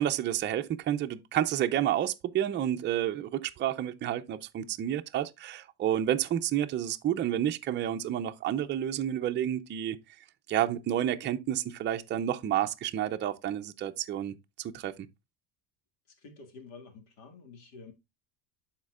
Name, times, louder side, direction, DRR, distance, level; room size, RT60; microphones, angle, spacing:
voice 1, 0.0-10.0 10.5-14.9, right 11 dB, 25° right, 0.5 m, -30 dB
voice 2, 16.2-17.9, left 4 dB, 75° left, 2.1 m, -49 dB
12.0 x 4.4 x 2.3 m
cardioid pair, 135°, 41 cm